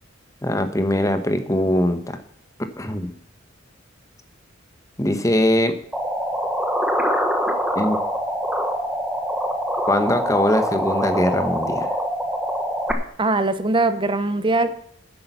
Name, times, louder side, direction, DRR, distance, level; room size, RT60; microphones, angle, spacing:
voice 1, 0.4-2.2 2.8-3.1 5.0-5.7 7.7-8.0 9.8-12.0, left 1 dB, 15° left, 8 dB, 1.1 m, -21 dB
sound 1, 5.9-12.9, equal, 5° right, 1.2 m, -24 dB
voice 2, 13.2-14.8, right 2 dB, 25° right, 12 dB, 0.8 m, -21 dB
10.5 x 8.5 x 6.9 m, 0.66 s
head